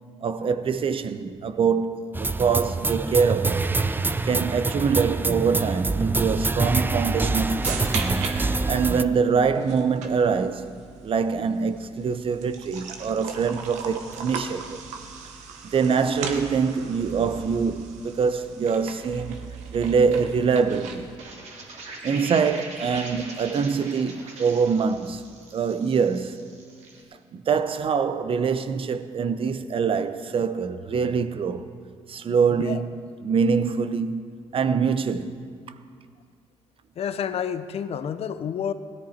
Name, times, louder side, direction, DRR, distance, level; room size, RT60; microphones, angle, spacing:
voice 1, 0.2-3.7 4.2-7.9 8.7-10.8 11.0-14.8 15.6-19.5 19.7-21.1 22.0-26.4 27.3-31.7 32.1-32.9 33.2-34.2 34.5-35.4, right 5 dB, 50° right, 0.8 m, -24 dB
sound 1, 2.1-9.0, right 3 dB, 15° right, 0.5 m, -25 dB
sound 2, 7.2-21.2, right 5 dB, 85° right, 1.2 m, -39 dB
sound 3, 21.2-27.0, right 3 dB, 70° right, 2.6 m, -41 dB
voice 2, 32.5-32.8 36.9-38.7, left 8 dB, 60° left, 0.7 m, -29 dB
17.0 x 13.5 x 4.4 m
supercardioid pair, 70°, 12 cm